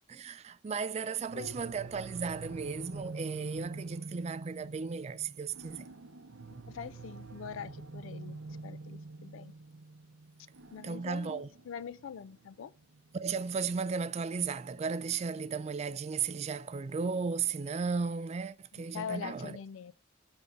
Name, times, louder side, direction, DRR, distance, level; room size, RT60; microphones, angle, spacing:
voice 1, 0.1-5.8 10.8-11.5 13.1-19.6, right 5 dB, 35° right, 0.3 m, -35 dB
sound 1, 1.3-14.1, right 3 dB, 90° right, 0.7 m, -46 dB
voice 2, 6.7-8.4 8.6-9.5 10.7-12.7 18.7-19.9, left 7 dB, 85° left, 0.4 m, -43 dB
5.3 x 3.5 x 5.2 m
head